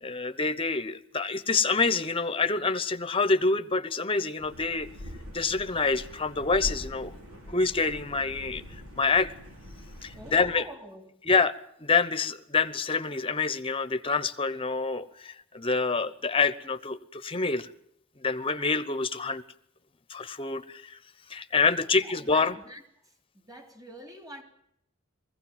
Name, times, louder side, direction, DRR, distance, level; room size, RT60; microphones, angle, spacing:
voice 1, 0.0-4.9 5.3-7.1 7.5-8.6 9.0-9.3 10.0-10.6 11.2-11.5 11.8-17.7 18.2-19.4 20.1-21.0 21.3-22.6, left 4 dB, 25° left, 1.0 m, -27 dB
sound 1, 4.4-10.5, left 1 dB, 90° right, 6.2 m, -43 dB
voice 2, 10.1-11.0 21.8-22.8 23.3-24.4, equal, 20° right, 3.2 m, -45 dB
21.0 x 16.0 x 9.0 m
head